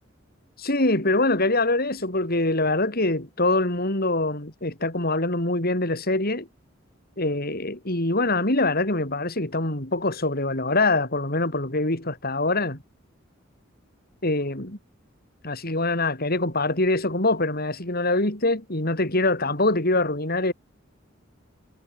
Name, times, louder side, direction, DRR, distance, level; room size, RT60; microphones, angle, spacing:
voice 1, 0.6-6.5 7.2-12.8 14.2-14.8 15.4-20.5, left 2 dB, 50° left, 5.2 m, -24 dB
head